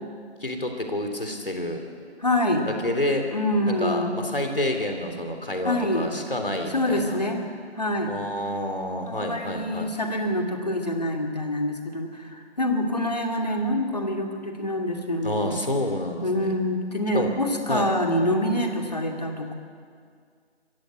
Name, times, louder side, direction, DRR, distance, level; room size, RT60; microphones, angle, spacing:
voice 1, 0.4-1.8 2.8-3.2 3.7-7.2 8.1-9.9 15.2-16.5 17.1-17.3 17.7-17.9, left 1 dB, 55° left, 4 dB, 3.5 m, -28 dB
voice 2, 2.2-2.7 3.3-4.4 5.6-6.1 6.7-7.4 7.8-8.1 9.0-15.6 16.2-19.6, left 1 dB, 35° left, 3 dB, 2.4 m, -26 dB
27.0 x 15.5 x 8.0 m, 2.1 s
figure-of-eight pair, 175°, 34 cm